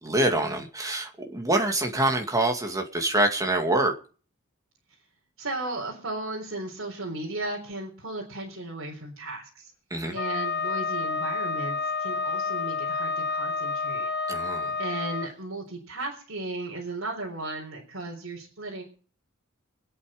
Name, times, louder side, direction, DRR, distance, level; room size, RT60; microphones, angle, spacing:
voice 1, 0.0-3.9 9.9-10.2 14.3-14.7, right 1 dB, 15° right, 3 dB, 2.2 m, -25 dB
voice 2, 5.4-9.7 10.1-14.1 14.8-18.8, right 2 dB, 70° right, -3 dB, 4.0 m, -35 dB
Wind instrument woodwind instrument, 10.1-15.3, left 4 dB, 55° left, 1.1 m, -29 dB
25.0 x 8.5 x 5.2 m, 0.40 s
head